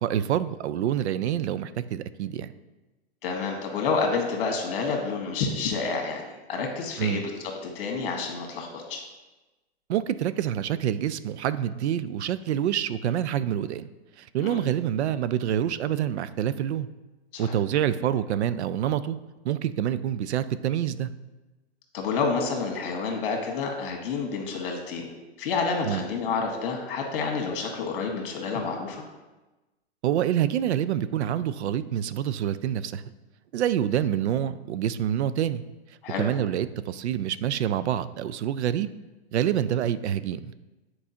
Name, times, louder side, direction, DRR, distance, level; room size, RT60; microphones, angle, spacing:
voice 1, 0.0-2.5 7.0-7.2 9.9-13.9 14.2-16.9 17.4-19.2 19.4-21.1 25.9-26.0 30.0-33.0 33.5-35.6 36.2-38.9 39.3-40.5, right 10 dB, 80° right, 15 dB, 0.5 m, -27 dB
voice 2, 3.2-6.2 6.5-7.3 7.7-9.0 14.4-14.6 17.3-17.5 21.9-25.1 25.4-29.0 36.0-36.2, left 4 dB, 55° left, 2 dB, 1.6 m, -29 dB
8.6 x 4.6 x 2.8 m, 1.1 s
hypercardioid pair, 155°, 33 cm